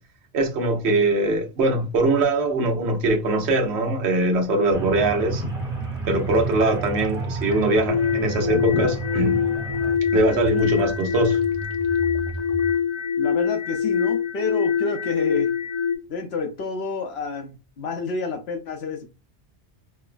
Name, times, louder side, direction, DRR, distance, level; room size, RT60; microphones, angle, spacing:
voice 1, 0.3-5.4 6.1-9.4 10.1-11.4, right 2 dB, 75° right, 1.0 m, -22 dB
sound 1, 4.7-10.0, right 3 dB, 5° right, 0.8 m, -32 dB
sound 2, 4.7-12.7, right 1 dB, 45° right, 0.6 m, -35 dB
sound 3, 7.9-16.0, left 7 dB, 45° left, 0.7 m, -24 dB
voice 2, 13.2-15.5 16.1-19.1, left 4 dB, 70° left, 1.0 m, -29 dB
4.5 x 2.1 x 2.4 m
omnidirectional pair, 1.1 m